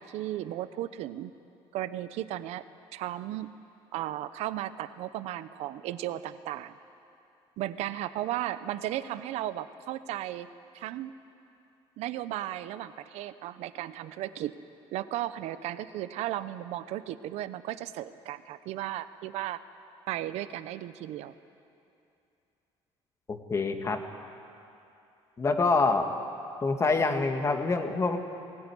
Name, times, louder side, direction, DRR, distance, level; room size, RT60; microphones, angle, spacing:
voice 1, 0.0-1.3 1.7-2.6 2.9-3.5 3.9-6.7 7.6-10.5 10.7-11.2 12.0-14.5 14.9-19.6 20.1-21.3, right 13 dB, 80° right, 13 dB, 0.8 m, -35 dB
voice 2, 23.3-24.0 25.4-26.1 26.6-28.2, left 3 dB, 25° left, 5 dB, 2.0 m, -26 dB
20.5 x 18.0 x 9.8 m, 2.7 s
cardioid pair, 120°, 11 cm